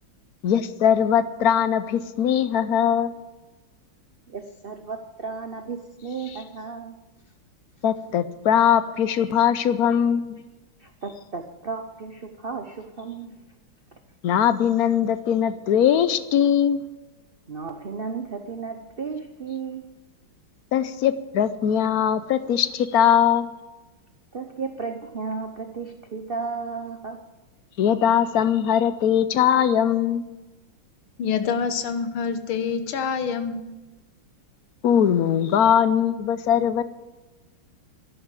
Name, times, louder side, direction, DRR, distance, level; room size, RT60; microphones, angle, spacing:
voice 1, 0.4-3.1 7.8-10.4 14.2-16.8 20.7-23.5 27.8-30.2 34.8-36.8, left 9 dB, 65° left, 13 dB, 0.9 m, -21 dB
voice 2, 4.3-7.0 9.1-9.3 9.9-10.0 10.8-13.4 17.5-19.9 24.3-27.2, right 5 dB, 70° right, 6 dB, 0.5 m, -34 dB
voice 3, 31.2-33.6, left 6 dB, 90° left, 10 dB, 1.9 m, -26 dB
12.0 x 11.0 x 7.6 m, 1.1 s
omnidirectional pair, 2.2 m